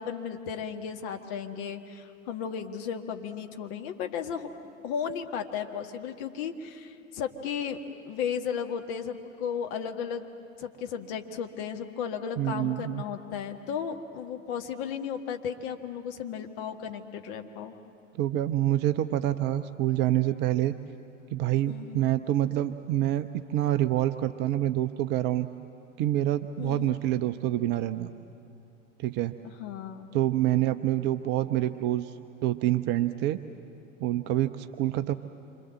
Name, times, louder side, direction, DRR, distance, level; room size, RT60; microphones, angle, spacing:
voice 1, 0.0-4.5 4.8-7.8 8.1-10.2 10.6-17.7 21.7-22.0 26.6-27.0 29.6-30.1, left 7 dB, 40° left, 5 dB, 1.9 m, -34 dB
voice 2, 12.4-13.0 18.2-20.8 21.3-25.5 26.0-28.1 29.0-29.3 30.1-32.1 32.4-33.4 34.0-35.1, right 13 dB, 25° right, 10 dB, 0.6 m, -27 dB
27.5 x 26.0 x 7.9 m, 2.7 s
figure-of-eight pair, 90°, 40 cm